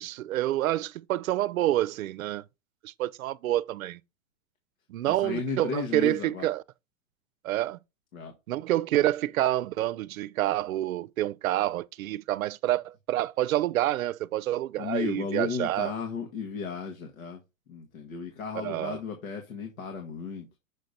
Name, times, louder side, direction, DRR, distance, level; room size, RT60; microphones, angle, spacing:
voice 1, 0.0-2.4 2.8-4.0 4.9-6.6 7.4-7.8 8.5-15.9 18.6-19.0, right 14 dB, 90° right, 0.6 m, -28 dB
voice 2, 5.0-6.5 8.1-8.3 14.8-17.4 17.7-20.6, left 5 dB, 90° left, 1.8 m, -34 dB
6.5 x 5.2 x 4.1 m
hypercardioid pair, 125°, 40 cm